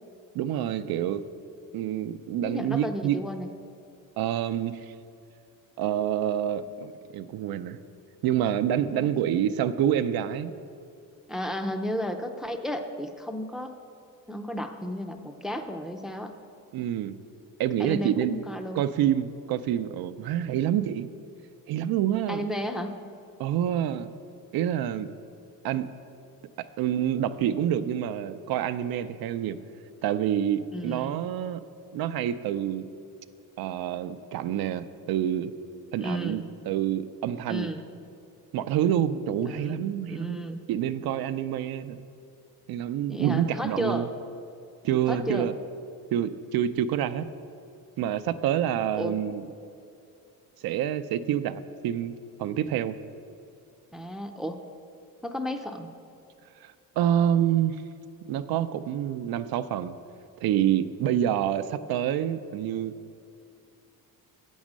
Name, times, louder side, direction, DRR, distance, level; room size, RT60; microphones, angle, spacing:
voice 1, 0.3-1.2 1.7-3.2 4.2-4.9 5.8-7.8 8.2-10.5 16.7-17.1 17.6-18.4 18.7-21.1 21.7-22.4 23.4-24.1 24.5-25.1 25.6-25.9 26.8-29.6 30.0-31.6 31.9-32.8 33.6-35.5 35.9-37.7 38.5-42.0 42.7-44.1 44.8-45.5 46.1-47.3 48.0-49.4 50.6-52.1 52.4-53.0 56.6-57.8 58.3-59.9 60.4-62.9, right 10 dB, 80° right, 11 dB, 0.5 m, -27 dB
voice 2, 2.4-3.5 8.9-9.3 11.3-13.8 14.3-16.3 17.8-18.8 22.3-23.0 30.7-31.2 36.0-36.4 37.5-37.8 39.4-40.6 43.1-44.1 45.1-45.5 48.9-49.2 53.9-54.6 55.2-55.9, equal, ahead, 6 dB, 0.5 m, -33 dB
8.1 x 6.3 x 7.3 m, 2.6 s
cardioid pair, 105°, 36 cm